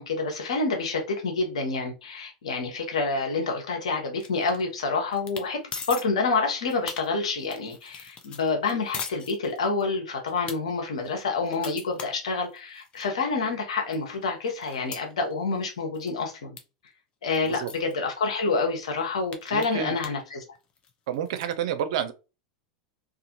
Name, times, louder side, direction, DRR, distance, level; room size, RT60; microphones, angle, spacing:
voice 1, 0.0-5.6 5.9-16.6 17.2-20.4, left 4 dB, 80° left, 0.9 m, -28 dB
sound 1, 4.2-4.8 5.1-5.5 5.7-6.0 6.5-9.9 10.3-10.6 11.0-13.1 13.5-13.6 13.9-15.7 15.9-16.2 16.6-16.7 16.9-17.0 17.3-17.9 18.5-18.6 18.9-20.3 20.6-21.5, left 5 dB, 30° left, 0.6 m, -40 dB
voice 2, 19.5-19.9 21.1-22.1, right 9 dB, 65° right, 0.5 m, -29 dB
2.5 x 2.4 x 2.8 m
hypercardioid pair, 100°, 3 cm